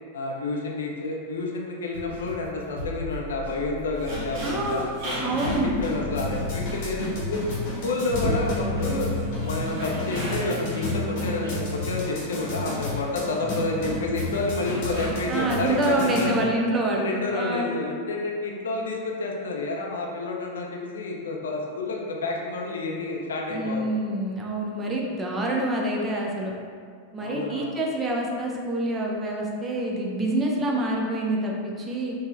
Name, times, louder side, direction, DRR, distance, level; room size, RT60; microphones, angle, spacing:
voice 1, 0.1-7.4 7.8-9.1 9.4-16.3 17.0-24.0 27.2-27.8, left 3 dB, 65° left, 0 dB, 0.4 m, -29 dB
sound 1, 1.9-11.1 11.4-11.5, equal, 65° right, 0.7 m, -39 dB
sound 2, 4.0-16.5, equal, 45° right, 1.2 m, -37 dB
voice 2, 4.4-4.9 5.2-5.8 15.3-17.8 23.5-26.5 27.1-32.1, right 1 dB, 20° right, -2 dB, 0.4 m, -26 dB
sound 3, 5.3-16.4, left 1 dB, 45° left, 0.8 m, -31 dB
3.6 x 2.0 x 2.4 m, 2.1 s
figure-of-eight pair, 90°, 0 cm